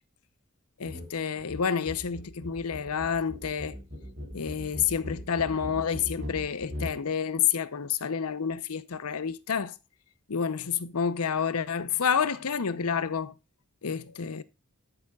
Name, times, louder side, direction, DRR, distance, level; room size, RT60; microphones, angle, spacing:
voice 1, 0.8-3.8 4.3-9.7 10.3-13.3 13.8-14.4, left 7 dB, 80° left, 0.7 m, -29 dB
sound 1, 0.8-1.1 1.4-7.0, left 1 dB, 45° right, 3.7 m, -39 dB
13.0 x 6.9 x 2.3 m
head